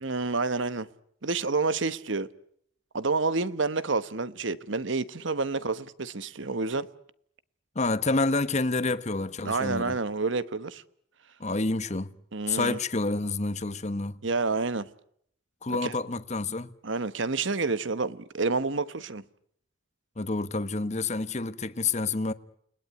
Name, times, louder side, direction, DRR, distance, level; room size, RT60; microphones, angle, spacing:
voice 1, 0.0-0.9 1.2-2.3 2.9-6.9 9.4-10.8 12.3-12.8 14.2-14.9 15.7-15.9 16.8-19.2, right 3 dB, 60° right, 1.1 m, -29 dB
voice 2, 7.7-10.0 11.4-12.1 12.5-14.2 15.6-16.7 20.2-22.3, left 3 dB, 35° left, 1.1 m, -28 dB
29.5 x 20.0 x 9.5 m
head